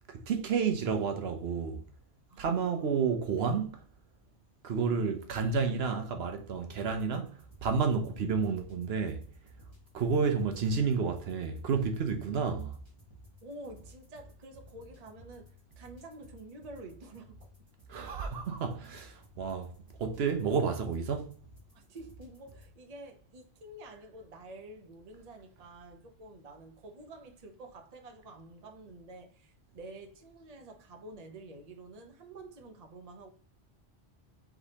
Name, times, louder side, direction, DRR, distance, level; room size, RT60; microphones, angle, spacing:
voice 1, 0.1-1.8 2.4-3.8 4.6-9.3 9.9-12.8 17.9-19.7 20.0-21.3, right 5 dB, 75° right, 0.9 m, -30 dB
voice 2, 2.3-3.3 13.4-17.7 21.7-33.3, right 2 dB, 40° right, 0.8 m, -49 dB
sound 1, 6.6-22.7, right 1 dB, 25° right, 1.6 m, -56 dB
4.7 x 3.3 x 2.8 m
omnidirectional pair, 1.1 m